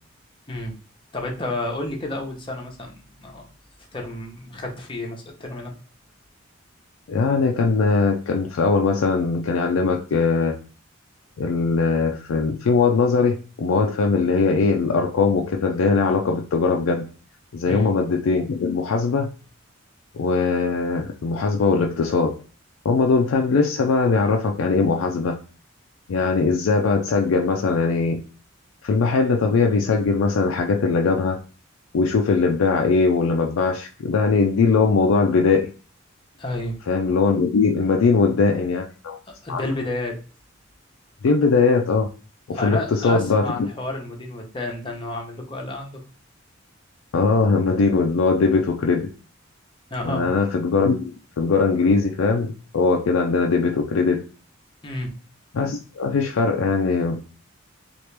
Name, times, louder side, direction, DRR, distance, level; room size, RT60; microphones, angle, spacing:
voice 1, 1.1-3.5 3.9-5.7 17.7-17.9 36.4-36.8 39.4-40.1 42.5-45.9 49.9-50.3 54.8-55.1, left 2 dB, 25° left, 1 dB, 0.7 m, -30 dB
voice 2, 7.1-10.6 11.4-17.1 17.5-19.3 20.1-22.4 22.8-25.4 26.1-28.2 28.8-31.4 31.9-35.7 36.9-39.2 39.5-39.6 41.2-42.1 42.5-43.7 47.1-49.1 50.0-54.3 55.5-57.2, left 4 dB, 90° left, 2 dB, 0.4 m, -20 dB
2.9 x 2.5 x 3.2 m, 0.38 s
head